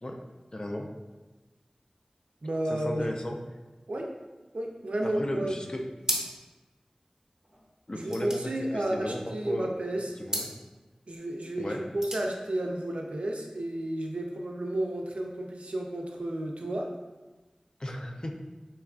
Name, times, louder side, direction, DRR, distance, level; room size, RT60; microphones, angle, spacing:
voice 1, 0.5-0.9 2.7-3.4 5.0-5.8 7.9-9.7 10.2-10.5 11.6-11.8 17.8-18.3, left 1 dB, 40° left, 2 dB, 0.4 m, -35 dB
voice 2, 2.4-3.1 3.9-4.1 4.5-5.5 7.9-10.1 11.1-16.9, right 1 dB, 80° right, 1 dB, 0.4 m, -32 dB
sound 1, 6.0-6.6 6.9-7.0 7.2-9.4 10.2-10.6 11.7-12.3, equal, 30° right, 0.7 m, -35 dB
4.3 x 2.3 x 2.3 m, 1.2 s
wide cardioid pair, 55°, 2 cm